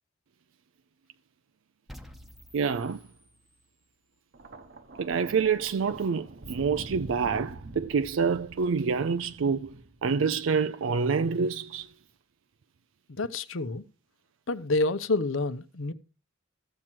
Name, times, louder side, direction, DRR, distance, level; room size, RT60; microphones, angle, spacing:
sound 1, 1.9-3.9, equal, ahead, 0.8 m, -50 dB
voice 1, 2.5-3.0 5.0-9.7 10.0-11.9, right 5 dB, 80° right, 0.4 m, -27 dB
Thunder, 4.3-10.7 11.7-11.9, right 2 dB, 60° right, 1.0 m, -45 dB
voice 2, 13.1-13.8 14.5-15.9, left 2 dB, 85° left, 0.8 m, -28 dB
14.5 x 7.5 x 4.5 m
head